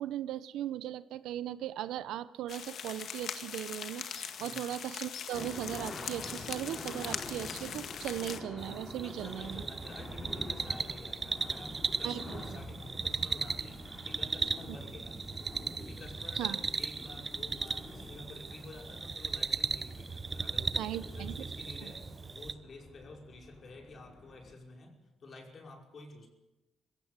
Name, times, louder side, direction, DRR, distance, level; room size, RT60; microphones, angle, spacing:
voice 1, 0.0-9.6 12.0-12.6 14.7-14.8 16.4-16.6 20.8-21.3 21.8-21.9, right 12 dB, 85° right, 15 dB, 0.8 m, -38 dB
sound 1, 2.5-8.4, left 7 dB, 65° left, 1.8 m, -41 dB
sound 2, 5.3-24.5, left 2 dB, 30° left, 3.2 m, -48 dB
sound 3, 8.6-22.5, right 4 dB, 30° right, 0.8 m, -37 dB
voice 2, 9.0-15.2 15.8-22.0 22.3-26.3, left 2 dB, 45° left, 2 dB, 5.5 m, -50 dB
21.5 x 16.0 x 8.3 m, 1.0 s
cardioid pair, 90°, 0 cm